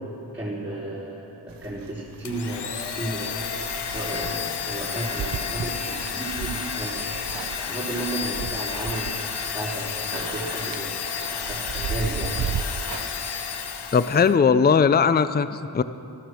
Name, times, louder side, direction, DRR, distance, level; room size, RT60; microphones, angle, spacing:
voice 1, 0.3-3.4 3.9-7.1 7.6-9.1 9.4-10.9 11.5-12.4, right 1 dB, 5° right, -9 dB, 4.1 m, -33 dB
sound 1, 1.5-12.9, right 8 dB, 60° right, 0.5 m, -37 dB
Domestic sounds home sounds, 2.3-14.4, left 6 dB, 85° left, 1.0 m, -31 dB
Rattle, 7.0-7.8 8.5-9.1 10.0-12.0 12.5-13.0, right 6 dB, 85° right, 1.0 m, -42 dB
voice 2, 13.9-15.8, left 6 dB, 25° left, 13 dB, 0.5 m, -19 dB
13.0 x 13.0 x 6.3 m, 2.6 s
cardioid pair, 50°, 39 cm